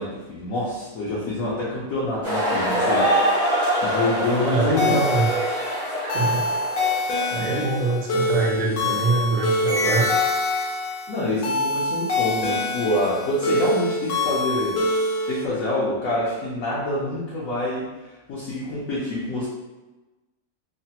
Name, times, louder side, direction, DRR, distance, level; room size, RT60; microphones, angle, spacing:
voice 1, 0.0-3.1 3.8-4.9 7.4-7.6 11.1-14.8 15.3-17.8 18.3-19.5, left 1 dB, 65° left, -6 dB, 0.9 m, -26 dB
sound 1, 2.2-7.4, equal, 15° right, 0.5 m, -24 dB
voice 2, 4.4-5.3 6.0-6.5 7.3-10.1, right 3 dB, 65° right, -3 dB, 0.8 m, -24 dB
sound 2, 4.8-15.4, left 2 dB, 90° left, 1.3 m, -25 dB
3.1 x 2.1 x 2.8 m, 1.1 s
omnidirectional pair, 1.8 m